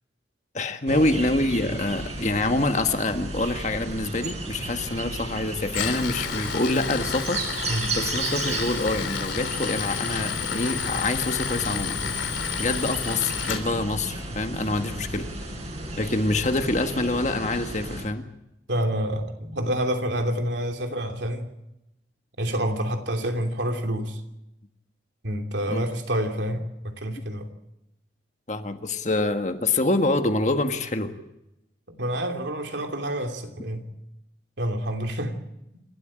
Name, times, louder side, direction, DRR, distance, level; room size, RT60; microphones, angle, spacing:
voice 1, 0.5-7.4 7.9-12.0 12.6-15.3 16.0-18.2 25.7-25.8 28.5-31.1, left 2 dB, 40° left, 1.5 m, -26 dB
sound 1, 0.9-18.1, right 2 dB, 35° right, 4.8 m, -34 dB
Tools, 5.6-13.6, left 7 dB, 90° left, 3.4 m, -31 dB
voice 2, 18.7-21.4 22.4-24.2 25.2-27.5 31.9-33.8 34.6-35.4, equal, 75° right, 3.0 m, -28 dB
28.0 x 13.0 x 8.9 m
head